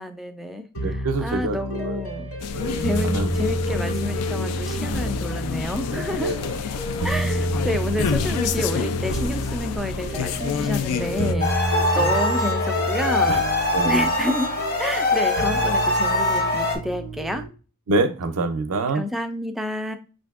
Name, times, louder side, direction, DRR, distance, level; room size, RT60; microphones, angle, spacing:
voice 1, 0.0-1.0 1.2-2.3 2.8-6.3 7.0-13.4 13.8-14.5 14.8-17.4 18.9-20.0, left 1 dB, ahead, 0.3 m, -29 dB
sound 1, 0.7-17.5, equal, 60° left, 1.5 m, -29 dB
voice 2, 0.8-2.0 2.5-3.3 6.2-6.6 11.7-12.1 13.3-13.4 13.7-14.1 17.9-19.1, right 2 dB, 75° right, 0.5 m, -26 dB
sound 2, 2.4-11.3, left 6 dB, 85° left, 0.3 m, -29 dB
sound 3, 11.4-16.8, left 2 dB, 45° left, 0.8 m, -23 dB
5.8 x 2.5 x 2.3 m
head